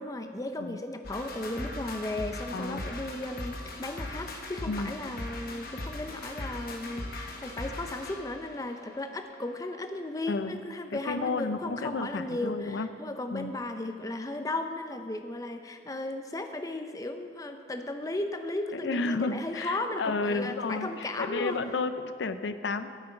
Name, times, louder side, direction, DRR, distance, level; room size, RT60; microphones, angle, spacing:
voice 1, 0.0-21.6, left 2 dB, 20° left, 7 dB, 0.5 m, -35 dB
sound 1, 1.0-10.5, left 2 dB, 55° left, 0.9 m, -40 dB
voice 2, 2.5-2.8 4.7-4.9 10.3-10.6 10.9-12.9 13.3-13.5 18.7-22.9, left 3 dB, 85° left, 11 dB, 0.5 m, -32 dB
13.5 x 7.8 x 4.5 m, 2.2 s
head